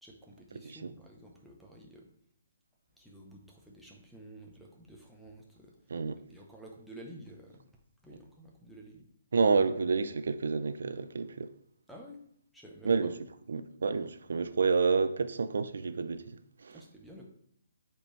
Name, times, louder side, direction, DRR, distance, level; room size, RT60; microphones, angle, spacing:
voice 1, 0.0-2.1 3.0-5.7 6.3-7.6 8.0-9.0 11.9-12.2 12.5-13.1 16.7-17.3, right 1 dB, ahead, 0.7 m, -51 dB
voice 2, 9.3-11.5 12.8-13.1 13.5-16.8, right 4 dB, 75° right, 0.4 m, -29 dB
7.7 x 4.5 x 3.1 m
hypercardioid pair, 170°, 0 cm